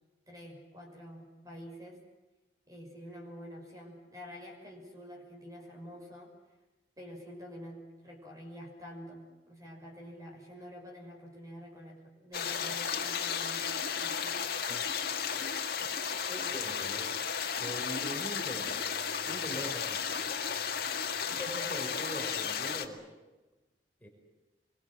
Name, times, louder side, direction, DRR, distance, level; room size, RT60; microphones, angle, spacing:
voice 1, 0.3-2.0 2.7-6.3 7.0-13.7 14.0-14.5, equal, 20° right, 0 dB, 6.1 m, -47 dB
sound 1, 12.3-22.9, left 7 dB, 55° left, 2.1 m, -34 dB
voice 2, 16.2-17.2 17.6-20.2 21.3-23.1 24.0-24.1, equal, 10° left, -1 dB, 5.4 m, -42 dB
26.0 x 23.0 x 7.7 m, 1.1 s
head